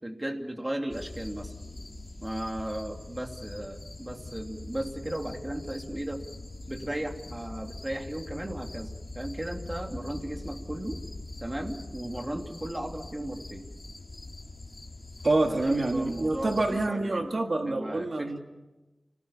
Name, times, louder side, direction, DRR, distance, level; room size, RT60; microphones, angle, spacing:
voice 1, 0.0-1.5 2.2-6.2 6.7-11.0 11.4-13.7 15.4-17.3 17.7-18.4, right 1 dB, 20° right, 3 dB, 3.0 m, -36 dB
sound 1, 0.9-16.9, left 2 dB, 45° left, 3.1 m, -43 dB
voice 2, 15.2-18.4, right 2 dB, 60° right, 4 dB, 1.8 m, -27 dB
29.5 x 19.0 x 7.3 m, 1.1 s
wide cardioid pair, 60°, 0 cm